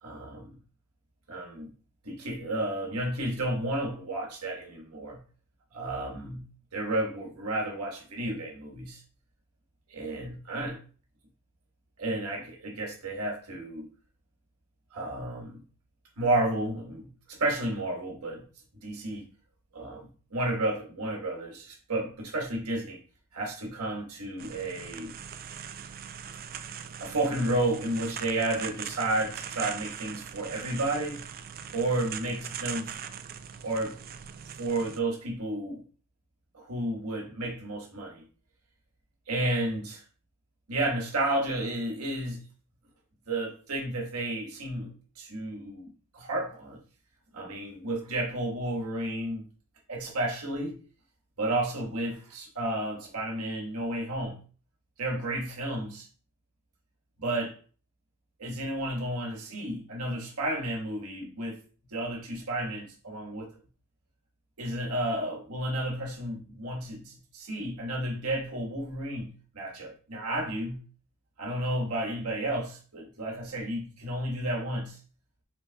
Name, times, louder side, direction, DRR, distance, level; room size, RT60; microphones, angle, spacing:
voice 1, 0.0-0.5 1.3-1.7 2.0-5.2 5.7-6.4 6.7-9.0 9.9-10.8 12.0-13.9 14.9-15.6 16.2-18.4 18.8-19.2 19.7-23.0 23.3-25.1 27.0-31.2 31.7-32.8 33.6-33.9 34.6-35.8 36.5-38.2 39.3-40.0 40.7-42.4 43.3-46.8 47.3-49.4 49.9-50.7 51.4-54.4 55.0-56.1 57.2-57.5 58.4-61.6 61.9-63.5 64.6-70.8 71.4-75.0, right 1 dB, 85° right, 1.3 m, -32 dB
sound 1, 24.4-35.0, right 8 dB, 45° right, 0.4 m, -41 dB
5.2 x 4.0 x 2.2 m
head